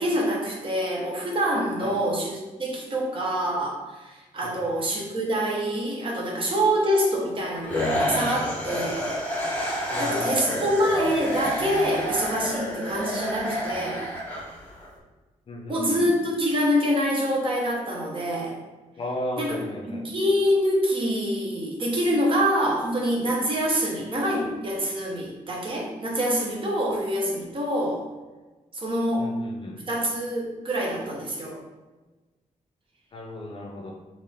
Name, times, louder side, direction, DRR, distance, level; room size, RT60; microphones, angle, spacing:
voice 1, 0.0-9.1 9.4-14.1 15.7-18.6 19.4-19.6 19.8-28.0 28.7-29.4 29.9-31.6, equal, 40° right, -2 dB, 0.9 m, -26 dB
voice 2, 4.4-4.9 9.9-10.7 15.5-16.2 19.0-20.1 29.2-29.8 33.1-33.9, left 1 dB, 40° left, 0 dB, 0.5 m, -36 dB
sound 1, 7.7-14.9, equal, 10° left, 0.8 m, -29 dB
3.6 x 2.5 x 3.4 m, 1.2 s
wide cardioid pair, 125°, 13 cm